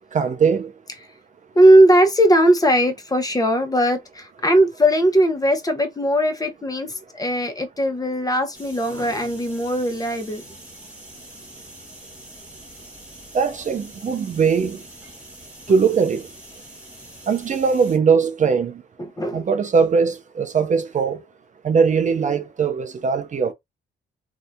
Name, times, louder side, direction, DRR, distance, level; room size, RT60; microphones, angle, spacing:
voice 1, 0.1-0.7 13.3-14.8 15.7-16.3 17.3-18.8 19.3-21.2 21.6-23.5, right 5 dB, 40° right, 0.5 m, -20 dB
voice 2, 1.5-10.4 19.0-19.5, right 1 dB, 20° left, 0.8 m, -18 dB
sound 1, 8.5-18.0, right 1 dB, 5° right, 1.3 m, -44 dB
2.7 x 2.4 x 3.4 m
cardioid pair, 90°, 20 cm